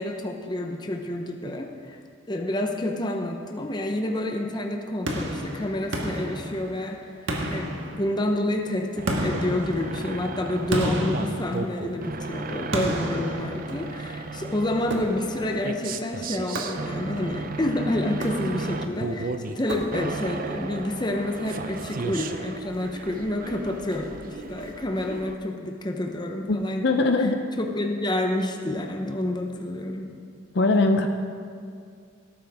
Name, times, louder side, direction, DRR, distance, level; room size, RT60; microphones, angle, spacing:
voice 1, 0.0-2.0 2.3-7.1 7.5-27.3 27.6-30.1, left 1 dB, 20° left, 3 dB, 0.7 m, -29 dB
sound 1, 5.1-6.9 7.3-8.4 9.1-12.1 12.7-14.1 14.9-15.5 16.5-17.3 18.1-18.9 19.7-20.4, right 1 dB, 65° right, 1.4 m, -31 dB
sound 2, 9.0-25.3, right 3 dB, 45° right, 0.5 m, -35 dB
voice 2, 26.5-27.4 30.5-31.1, left 2 dB, 55° left, 6 dB, 0.6 m, -21 dB
17.5 x 8.8 x 3.5 m, 2.3 s
head